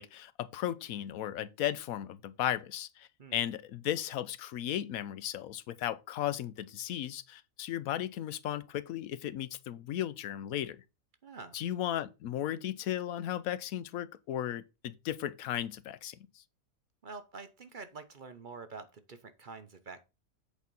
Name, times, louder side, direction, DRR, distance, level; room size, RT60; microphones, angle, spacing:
voice 1, 0.0-10.8 11.5-16.2, left 11 dB, 85° left, 1.1 m, -35 dB
voice 2, 11.2-11.6 17.0-20.0, right 4 dB, 45° right, 0.8 m, -47 dB
8.2 x 4.3 x 5.4 m
omnidirectional pair, 1.4 m